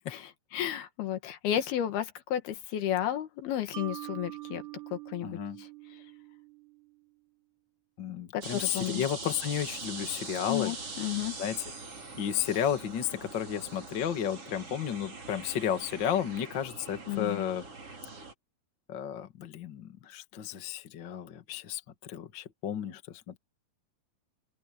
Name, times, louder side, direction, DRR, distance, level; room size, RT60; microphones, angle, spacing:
voice 1, 0.5-4.6 4.9-5.4 8.3-9.0 10.5-11.4 17.1-17.4, left 11 dB, 75° left, 3.5 m, -32 dB
Mallet percussion, 3.7-7.0, right 16 dB, 80° right, 3.7 m, -44 dB
voice 2, 5.2-5.6 8.0-10.7 11.4-11.7 12.2-17.6 18.9-23.4, left 9 dB, 45° left, 1.6 m, -33 dB
sound 1, 8.4-18.3, right 3 dB, 35° right, 5.5 m, -42 dB
open air
omnidirectional pair, 4.5 m